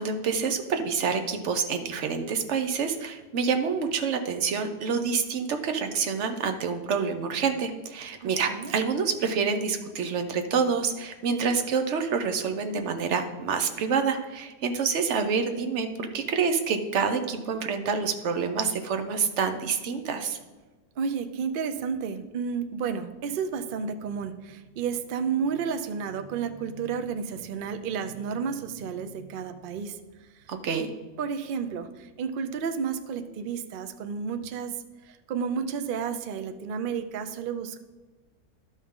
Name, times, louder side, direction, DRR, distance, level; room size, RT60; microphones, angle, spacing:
voice 1, 0.0-20.4 30.5-30.9, right 5 dB, 55° right, 7 dB, 0.9 m, -27 dB
voice 2, 8.2-8.7 21.0-30.0 31.2-34.7 35.3-37.8, right 6 dB, 75° right, 8 dB, 0.5 m, -31 dB
11.5 x 5.4 x 3.7 m, 1.2 s
omnidirectional pair, 1.6 m